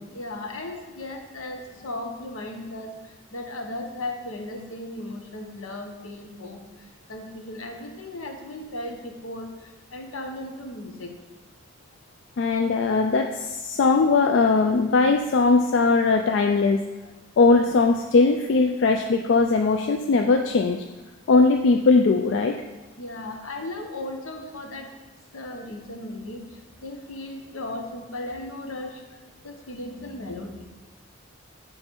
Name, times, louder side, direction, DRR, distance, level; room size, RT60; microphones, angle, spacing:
voice 1, 0.1-2.9 3.3-6.6 7.1-9.5 9.9-11.1 23.0-24.9 25.3-26.4 26.8-29.0 29.4-30.7, left 1 dB, 80° left, 3 dB, 0.9 m, -36 dB
voice 2, 12.4-16.8 17.4-20.8 21.3-22.6, left 3 dB, 60° left, 4 dB, 0.3 m, -20 dB
8.7 x 3.2 x 4.5 m, 1.2 s
head